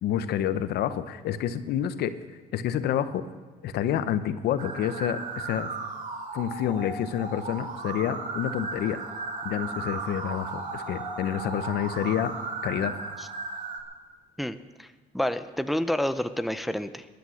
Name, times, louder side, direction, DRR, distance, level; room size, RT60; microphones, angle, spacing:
voice 1, 0.0-2.1 2.5-3.2 3.6-5.7 6.3-9.0 9.4-12.3 12.6-12.9, left 10 dB, 70° left, 12 dB, 0.9 m, -28 dB
sound 1, 4.6-13.8, right 3 dB, 45° right, 2.5 m, -35 dB
voice 2, 14.4-14.9 15.1-17.1, left 1 dB, ahead, 10 dB, 0.6 m, -29 dB
18.5 x 10.5 x 6.4 m, 1.4 s
cardioid pair, 110°, 17 cm